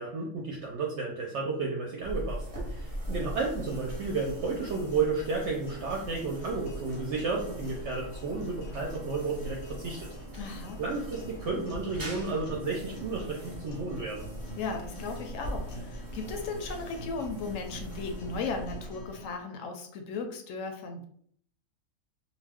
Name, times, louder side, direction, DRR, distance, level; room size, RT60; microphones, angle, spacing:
voice 1, 0.0-10.1 10.8-14.3, right 4 dB, 65° right, -1 dB, 0.8 m, -32 dB
sound 1, 2.0-19.4, equal, 30° right, 0.9 m, -41 dB
sound 2, 3.2-19.2, left 1 dB, 85° left, 1.1 m, -48 dB
voice 2, 10.4-10.8 14.6-21.0, left 4 dB, 70° left, 4 dB, 0.9 m, -36 dB
2.5 x 2.2 x 3.4 m, 0.63 s
omnidirectional pair, 1.5 m